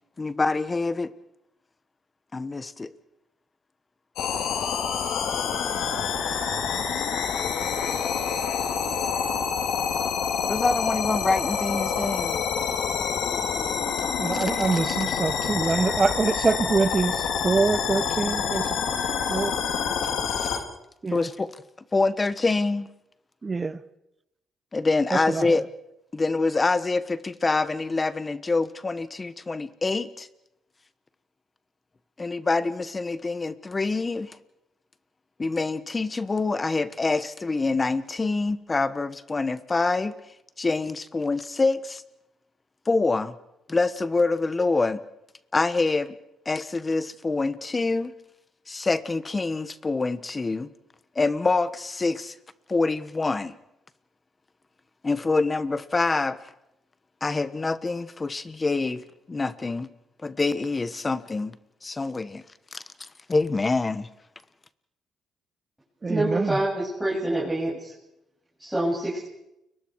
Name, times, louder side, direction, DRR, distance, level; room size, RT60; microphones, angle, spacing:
voice 1, 0.2-1.1 2.3-2.9 10.5-12.4 20.4-20.6 21.1-21.5 21.9-22.9 24.7-25.6 26.1-30.3 32.2-34.4 35.4-40.1 40.6-42.0 42.9-43.3 43.7-45.0 45.5-46.2 46.4-48.1 48.7-50.7 51.1-52.3 52.7-53.5 55.0-56.4 57.2-59.9 60.2-61.5 61.8-62.4 62.7-62.8 63.3-64.1, left 3 dB, 25° left, 1.3 m, -26 dB
sound 1, 4.2-20.6, left 6 dB, 85° left, 3.1 m, -27 dB
voice 2, 14.2-18.8 19.3-19.6 21.0-21.3 23.4-23.8 25.1-25.6 66.0-66.6, right 4 dB, 30° right, 1.1 m, -25 dB
voice 3, 66.1-67.9 68.6-69.2, right 1 dB, 5° right, 7.8 m, -26 dB
30.0 x 23.0 x 4.8 m
cardioid pair, 90°, 0 cm